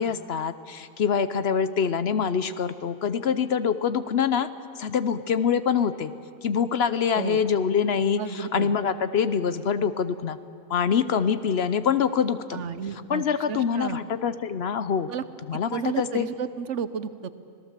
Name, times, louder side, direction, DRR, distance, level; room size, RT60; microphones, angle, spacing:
voice 1, 0.0-4.5 4.8-6.1 6.4-10.4 10.7-12.6 13.1-15.1 15.5-16.3, left 7 dB, 60° left, 13 dB, 0.9 m, -25 dB
voice 2, 8.2-8.8 12.5-14.0 15.1-15.2 15.5-17.3, right 7 dB, 70° right, 13 dB, 1.1 m, -32 dB
26.5 x 17.5 x 7.4 m, 2.4 s
omnidirectional pair, 1.3 m